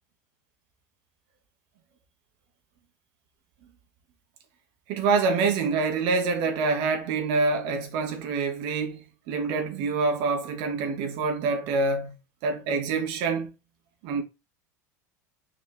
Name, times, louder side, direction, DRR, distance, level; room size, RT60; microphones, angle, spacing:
voice 1, 4.9-12.2 12.4-13.5 14.0-14.2, right 4 dB, 60° right, 2.4 m, -26 dB
6.9 x 5.4 x 3.8 m
hypercardioid pair, 90°, 9 cm